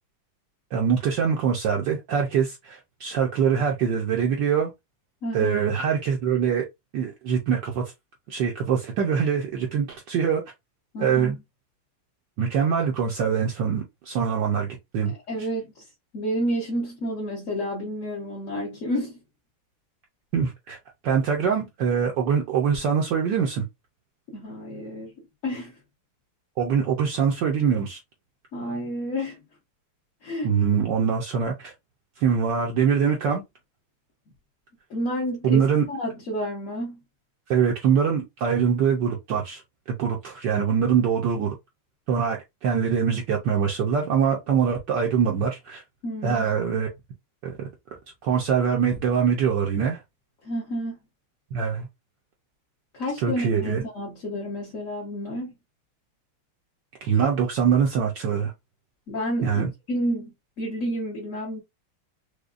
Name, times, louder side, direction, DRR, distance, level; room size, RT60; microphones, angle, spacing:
voice 1, 0.7-4.7 5.3-6.6 6.9-7.8 8.3-10.4 11.0-11.4 12.4-14.7 14.9-15.1 20.3-20.8 21.0-23.7 26.6-28.0 30.4-31.7 32.2-33.4 35.4-35.8 37.5-39.6 39.9-41.5 42.1-45.8 46.2-46.9 47.4-47.7 48.2-50.0 51.5-51.9 53.2-53.8 57.0-58.5 59.4-59.7, right 7 dB, 70° right, 1.2 m, -23 dB
voice 2, 5.2-5.6 10.9-11.4 15.0-15.9 16.1-19.2 24.3-25.1 25.4-25.8 28.5-29.4 30.2-30.6 34.9-37.0 46.0-46.5 50.4-51.0 52.9-55.5 59.1-61.6, equal, 45° left, 1.2 m, -30 dB
5.0 x 2.2 x 2.4 m
omnidirectional pair, 2.4 m